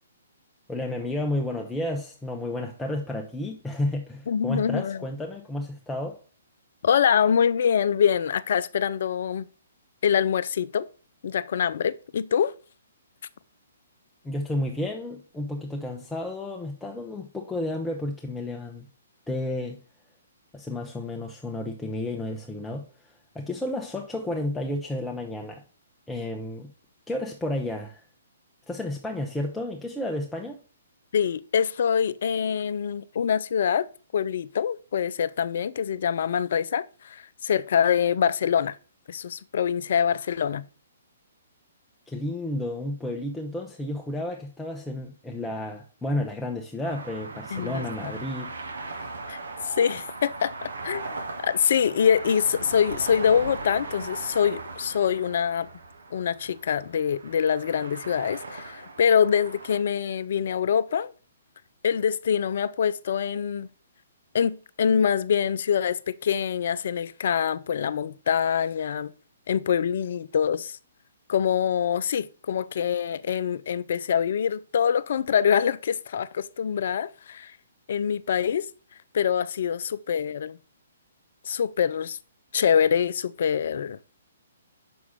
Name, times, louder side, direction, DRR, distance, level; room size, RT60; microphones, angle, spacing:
voice 1, 0.7-6.2 14.2-18.9 19.3-19.8 20.5-22.9 23.3-25.6 26.1-26.7 27.1-28.0 28.7-30.6 42.1-48.5, left 1 dB, 5° left, 0.7 m, -31 dB
voice 2, 4.3-5.0 6.8-9.5 10.0-10.9 11.2-12.5 31.1-38.8 39.1-40.6 47.5-48.1 49.3-49.4 49.6-51.1 51.4-55.7 56.1-61.1 61.8-63.7 64.3-69.1 69.5-70.8 71.3-77.5 77.9-78.7 79.1-80.6 81.5-82.2 82.5-84.0, left 8 dB, 55° left, 0.4 m, -25 dB
sound 1, 46.8-59.8, right 3 dB, 70° right, 1.2 m, -38 dB
6.2 x 4.7 x 5.6 m
figure-of-eight pair, 125°, 0 cm